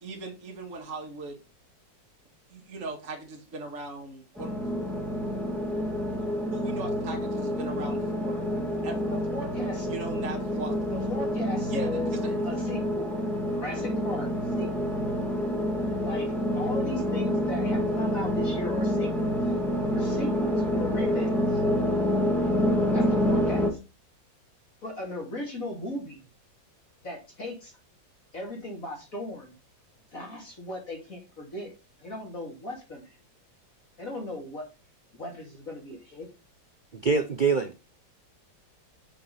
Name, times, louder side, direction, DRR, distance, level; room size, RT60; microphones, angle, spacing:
voice 1, 0.0-1.4 2.5-4.6 6.1-8.5 8.8-9.2 9.9-10.8 11.7-12.4, right 2 dB, 45° right, 2.1 m, -39 dB
sound 1, 4.4-23.7, equal, ahead, 1.9 m, -27 dB
voice 2, 9.3-9.9 10.9-12.1 12.4-13.1 13.5-14.3 14.6-14.9 16.0-19.4 19.9-21.6 22.9-23.8 24.8-26.2 27.0-27.7 28.3-29.5 30.1-31.7 32.0-33.2 34.0-34.7 35.1-36.3, left 1 dB, 45° left, 2.8 m, -37 dB
voice 3, 36.9-37.8, right 5 dB, 85° right, 0.4 m, -25 dB
6.4 x 5.7 x 5.5 m
omnidirectional pair, 2.0 m